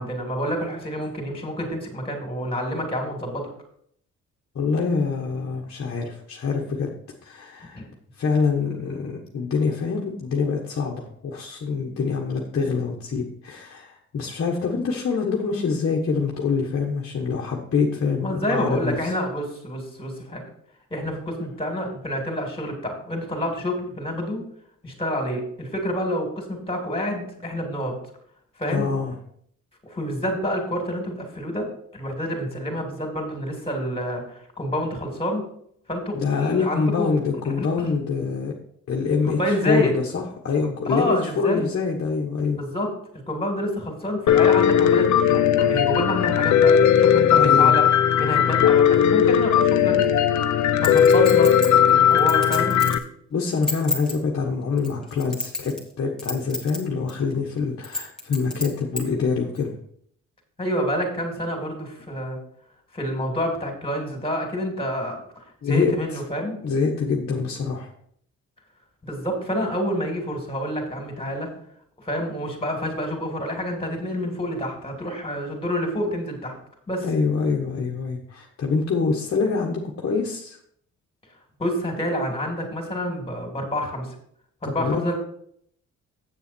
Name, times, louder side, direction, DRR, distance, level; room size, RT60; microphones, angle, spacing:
voice 1, 0.0-3.4 7.7-7.8 18.2-20.4 20.9-24.4 24.8-27.9 28.6-28.8 29.8-31.7 31.9-35.4 35.9-37.1 37.6-37.9 39.3-39.9 40.6-41.7 42.6-42.9 43.3-47.8 48.2-50.0 50.8-51.5 51.9-52.8 60.6-62.4 62.9-66.6 69.0-71.5 72.0-76.5 76.9-77.0 81.6-84.1 84.6-85.1, equal, 20° left, 2 dB, 3.1 m, -28 dB
voice 2, 4.5-6.9 7.2-7.9 8.2-19.1 28.7-29.1 36.1-38.6 38.9-39.4 39.6-42.6 47.3-47.8 53.3-59.7 65.6-65.9 66.6-67.9 77.0-80.6 84.6-85.1, left 5 dB, 50° left, -1 dB, 1.4 m, -25 dB
Piano, 44.3-53.0, left 9 dB, 70° left, 0.8 m, -17 dB
Chink clink, 50.8-53.0 53.5-54.1 54.8-55.9 56.2-56.8 57.1-57.2 57.8-59.0 59.6-59.7, left 2 dB, ahead, 2.1 m, -29 dB
8.0 x 7.1 x 4.5 m, 0.66 s
cardioid pair, 90°, 30 cm